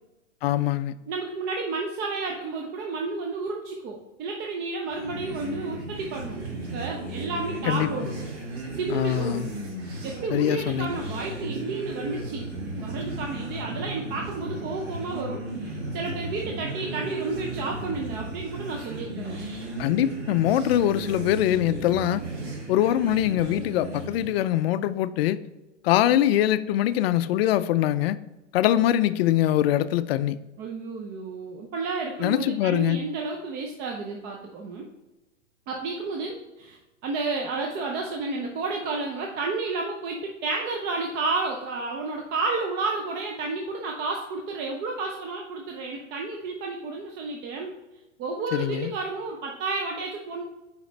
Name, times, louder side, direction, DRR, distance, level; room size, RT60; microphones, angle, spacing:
voice 1, 0.4-0.9 7.7-7.9 8.9-9.5 10.3-11.0 19.8-22.2 22.7-25.4 25.8-28.2 28.5-30.4 32.2-33.0 48.5-48.9, left 12 dB, 55° left, 0.4 m, -23 dB
voice 2, 1.1-6.4 6.7-8.1 8.7-9.5 10.0-12.5 12.8-19.4 30.6-34.9 35.7-47.7 48.2-50.4, right 3 dB, 25° right, 0.6 m, -31 dB
sound 1, 4.9-24.3, right 2 dB, 60° right, 2.0 m, -35 dB
5.0 x 4.9 x 4.0 m
hypercardioid pair, 130°, 38 cm